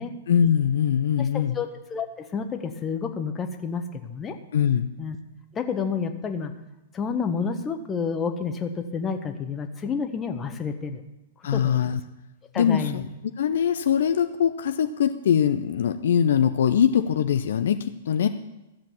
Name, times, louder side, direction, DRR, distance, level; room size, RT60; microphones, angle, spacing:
voice 1, 0.3-1.6 4.5-4.9 11.4-12.0 12.6-13.0 13.4-18.3, left 8 dB, 65° left, 9 dB, 0.6 m, -22 dB
voice 2, 1.3-2.1 2.3-4.3 5.0-5.2 5.5-6.5 6.9-11.0 11.5-11.8 12.5-13.0, left 5 dB, 20° left, 6 dB, 1.3 m, -29 dB
14.0 x 7.4 x 7.2 m, 0.99 s
figure-of-eight pair, 105°, 0 cm